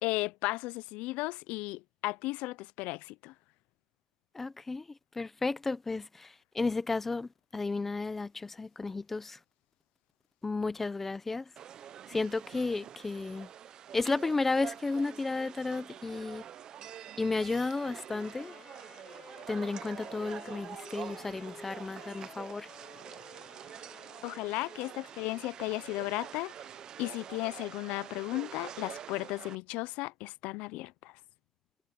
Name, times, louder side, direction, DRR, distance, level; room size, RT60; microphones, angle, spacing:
voice 1, 0.0-3.3 24.2-26.5 27.0-31.1, left 21 dB, 80° left, 0.4 m, -35 dB
voice 2, 4.3-4.9 5.2-9.4 10.4-11.4 12.1-13.5 13.9-16.4 17.2-18.5 19.5-22.7, left 3 dB, 10° left, 0.6 m, -33 dB
sound 1, 11.6-29.6, right 10 dB, 35° right, 0.6 m, -46 dB
Wind instrument woodwind instrument, 18.2-25.1, left 9 dB, 35° left, 6.3 m, -54 dB
cardioid pair, 180°, 2 cm